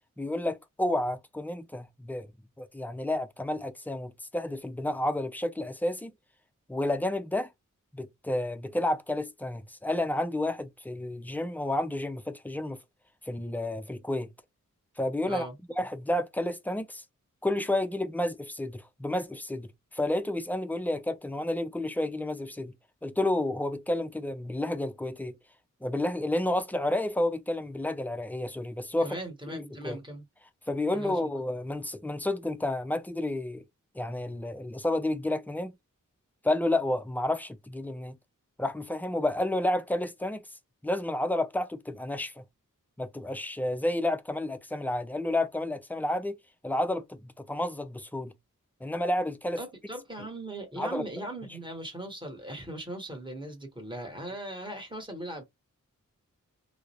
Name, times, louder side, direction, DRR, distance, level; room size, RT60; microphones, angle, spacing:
voice 1, 0.2-2.3 2.6-6.1 6.7-7.5 7.9-12.8 13.2-14.3 15.0-15.5 15.8-17.0 17.4-22.7 23.0-25.4 25.8-29.2 29.5-30.0 30.7-33.6 33.9-35.7 36.4-38.2 38.6-40.4 40.8-42.4 43.0-46.4 46.6-48.3 48.8-49.6 50.7-51.1, left 1 dB, 5° left, 0.3 m, -30 dB
voice 2, 29.0-30.2 30.9-31.2 49.6-55.4, right 1 dB, 15° right, 1.1 m, -39 dB
2.3 x 2.0 x 2.8 m
wide cardioid pair, 70°, 32 cm